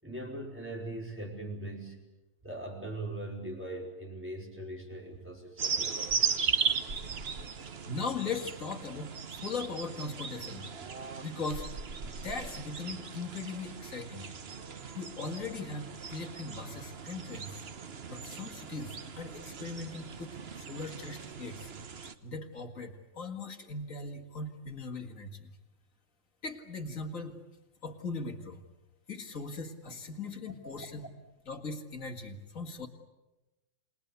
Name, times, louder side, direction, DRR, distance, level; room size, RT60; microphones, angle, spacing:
voice 1, 0.0-2.0 2.4-6.3 30.6-30.9, right 1 dB, 5° right, 0 dB, 4.7 m, -40 dB
sound 1, 5.6-22.1, right 6 dB, 40° right, 1.0 m, -37 dB
voice 2, 7.6-10.7 11.2-11.7 12.0-14.3 14.9-17.7 18.1-21.7 22.2-25.5 26.4-27.4 27.8-28.6 29.1-31.1 31.4-32.9, left 4 dB, 45° left, 4 dB, 2.4 m, -39 dB
28.0 x 20.5 x 8.3 m, 1.1 s
omnidirectional pair, 1.9 m